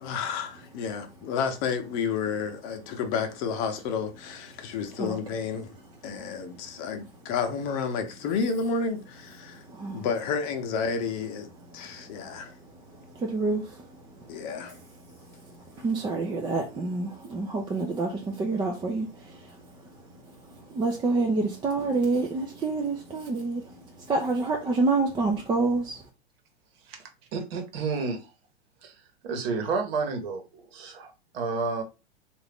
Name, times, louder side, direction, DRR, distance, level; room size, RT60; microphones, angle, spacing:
voice 1, 0.0-5.7 6.0-9.6 9.9-12.5 14.3-14.8, left 5 dB, 45° left, 0.8 m, -31 dB
voice 2, 9.7-10.1 12.2-12.3 13.1-13.9 15.3-15.4 15.7-19.6 20.6-26.0, right 3 dB, 15° right, 0.5 m, -28 dB
voice 3, 27.3-28.2 28.8-28.9 29.2-31.8, right 4 dB, 60° right, 1.2 m, -30 dB
3.7 x 2.6 x 3.4 m
hypercardioid pair, 100°, 33 cm